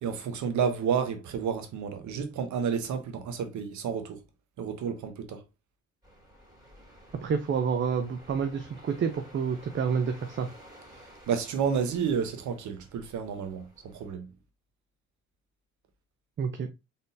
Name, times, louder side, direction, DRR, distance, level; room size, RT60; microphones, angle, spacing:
voice 1, 0.0-4.2 4.6-5.4 11.3-14.3, right 7 dB, 75° right, 1.0 m, -30 dB
sound 1, 6.0-14.1, equal, 10° right, 2.7 m, -53 dB
voice 2, 7.2-10.5 16.4-16.7, right 6 dB, 40° right, 0.6 m, -29 dB
4.1 x 3.7 x 2.6 m
cardioid pair, 90°, 30 cm